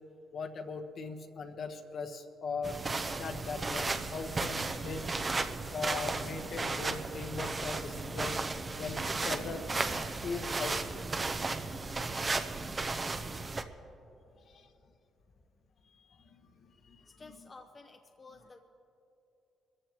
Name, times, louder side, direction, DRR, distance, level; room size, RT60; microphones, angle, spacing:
voice 1, 0.3-2.8 3.2-8.4 8.7-10.8 14.5-14.7 15.9-16.4 16.9-17.2, left 4 dB, 60° left, 5 dB, 1.2 m, -40 dB
sound 1, 2.6-13.6, right 3 dB, 30° right, 0.7 m, -35 dB
voice 2, 17.1-18.6, left 3 dB, 35° left, 4 dB, 0.8 m, -53 dB
23.0 x 14.5 x 3.0 m, 3.0 s
cardioid pair, 90°, 0 cm